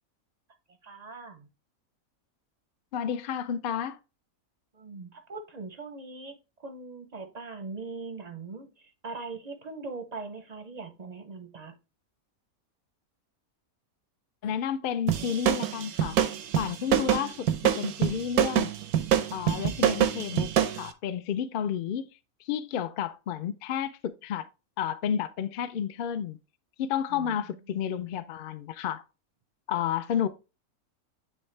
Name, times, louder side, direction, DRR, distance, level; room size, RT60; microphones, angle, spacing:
voice 1, 0.8-1.5 4.7-11.7 27.1-27.4, right 3 dB, 45° right, 0.5 m, -41 dB
voice 2, 2.9-4.0 14.4-16.2 16.6-18.7 19.3-22.1 22.4-24.5 24.8-26.4 26.8-29.0 29.7-30.3, left 8 dB, 65° left, 0.5 m, -31 dB
sound 1, 15.1-20.8, right 10 dB, 90° right, 1.2 m, -25 dB
9.2 x 3.5 x 3.2 m
omnidirectional pair, 1.6 m